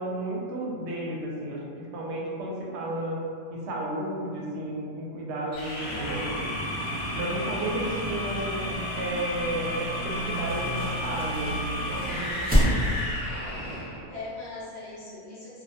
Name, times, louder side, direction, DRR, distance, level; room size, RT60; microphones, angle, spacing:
voice 1, 0.0-3.2 3.5-6.5 7.1-12.8, right 1 dB, 70° right, -3 dB, 0.8 m, -33 dB
sound 1, 5.5-14.0, equal, 80° left, 0.9 m, -32 dB
voice 2, 5.8-6.6 7.9-8.3 14.1-15.6, left 2 dB, 50° left, -8 dB, 0.6 m, -40 dB
sound 2, 7.6-13.2, equal, 10° right, 0.4 m, -30 dB
2.3 x 2.1 x 2.6 m, 2.2 s
omnidirectional pair, 1.2 m